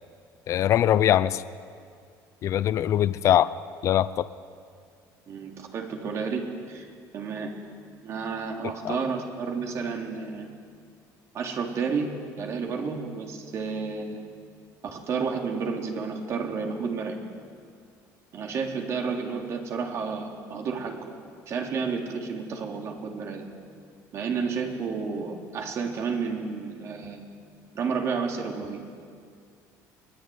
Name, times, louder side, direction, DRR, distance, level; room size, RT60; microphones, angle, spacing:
voice 1, 0.5-1.4 2.4-3.5 3.8-4.3 8.8-9.0, left 11 dB, 45° left, 15 dB, 0.6 m, -22 dB
voice 2, 5.3-6.9 7.1-7.5 8.0-10.5 11.3-14.2 14.9-17.2 18.3-21.0 21.5-23.4 24.1-27.2 27.7-28.8, right 5 dB, 45° right, 2 dB, 3.4 m, -31 dB
23.5 x 18.5 x 9.5 m, 2.2 s
cardioid pair, 140°, 7 cm